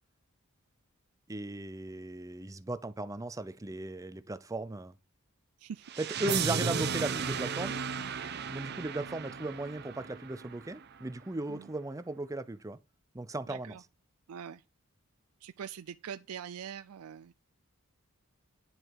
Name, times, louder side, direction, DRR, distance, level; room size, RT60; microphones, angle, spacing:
voice 1, 1.3-4.9 6.0-7.8 8.5-12.8 13.1-13.8, right 2 dB, 15° right, 0.5 m, -37 dB
sound 1, 5.9-10.8, right 6 dB, 50° right, 0.7 m, -35 dB
voice 2, 13.5-13.8 14.3-14.6 15.4-17.3, right 8 dB, 75° right, 0.4 m, -43 dB
9.8 x 7.8 x 4.7 m
head